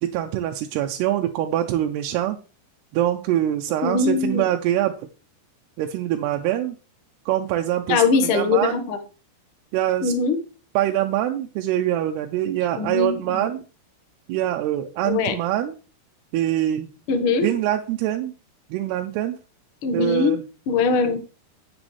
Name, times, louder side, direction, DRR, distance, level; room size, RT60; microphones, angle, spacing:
voice 1, 0.0-2.4 2.9-4.9 5.8-6.8 7.3-8.0 8.3-8.9 9.7-10.1 10.7-13.6 14.3-15.8 16.3-16.9 17.4-18.3 18.7-19.4 19.9-20.5, right 12 dB, 85° right, 4 dB, 2.7 m, -24 dB
voice 2, 3.8-4.4 7.9-9.0 10.0-10.4 12.8-13.4 15.0-15.3 17.1-17.5 19.8-20.4 20.7-21.2, left 4 dB, 80° left, 6 dB, 1.2 m, -21 dB
10.0 x 9.7 x 3.2 m, 0.34 s
omnidirectional pair, 4.7 m